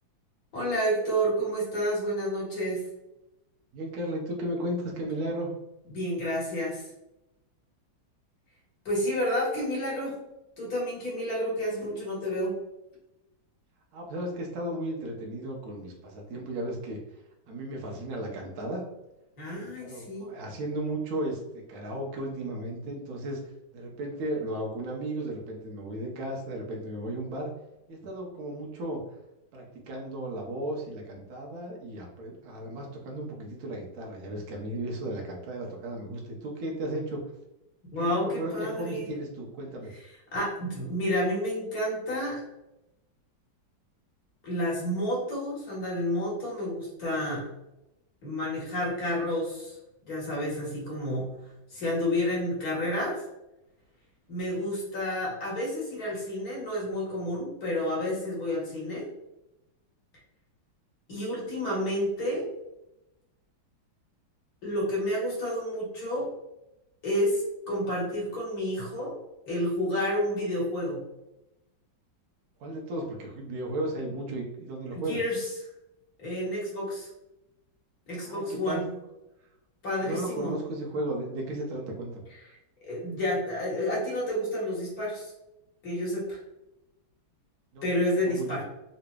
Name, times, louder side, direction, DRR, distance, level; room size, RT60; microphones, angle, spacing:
voice 1, 0.5-2.9 5.9-6.9 8.8-10.1 10.6-12.6 19.4-20.3 37.9-39.1 40.3-42.4 44.4-47.5 48.2-49.7 50.0-51.3 51.7-53.2 54.3-59.1 61.1-62.5 64.6-66.3 67.0-69.1 69.5-71.0 74.9-75.5 76.2-77.1 78.1-78.9 79.8-80.6 82.8-85.3 85.8-86.4 87.8-88.6, equal, 50° left, -5 dB, 1.6 m, -30 dB
voice 2, 3.7-5.5 13.9-17.0 17.5-18.8 19.6-23.4 23.7-27.5 27.9-29.0 29.5-37.2 38.0-39.9 54.5-54.7 72.6-75.2 78.2-78.8 80.0-82.3 87.7-87.9 88.2-88.6, right 1 dB, 60° right, 0 dB, 1.0 m, -35 dB
3.9 x 3.0 x 2.2 m, 0.93 s
omnidirectional pair, 2.1 m